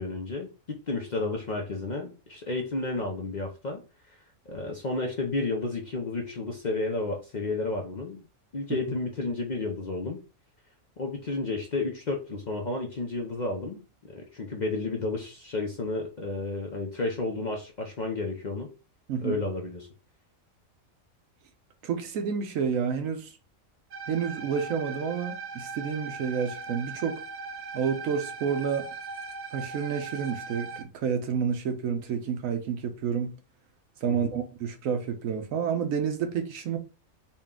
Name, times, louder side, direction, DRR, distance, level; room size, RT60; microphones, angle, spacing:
voice 1, 0.0-3.8 4.1-4.2 4.5-8.2 8.5-10.2 11.0-13.8 14.1-18.7 19.2-19.9 34.1-34.3, left 3 dB, 45° left, 0.6 m, -32 dB
voice 2, 21.8-23.3 24.1-27.2 27.7-28.9 29.5-33.3 34.0-36.8, right 7 dB, 80° right, 1.1 m, -29 dB
sound 1, 23.9-30.8, right 4 dB, 60° right, 0.4 m, -39 dB
4.2 x 2.3 x 3.6 m
omnidirectional pair, 1.4 m